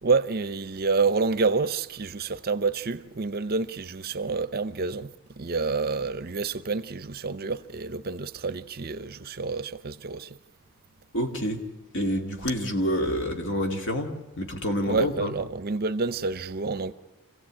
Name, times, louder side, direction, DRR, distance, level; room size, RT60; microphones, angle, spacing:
voice 1, 0.0-10.4 14.9-16.9, right 4 dB, 45° right, 0.7 m, -28 dB
voice 2, 11.1-11.6 11.9-14.1 14.4-15.3, equal, 55° left, 2.3 m, -27 dB
26.0 x 16.5 x 8.8 m
head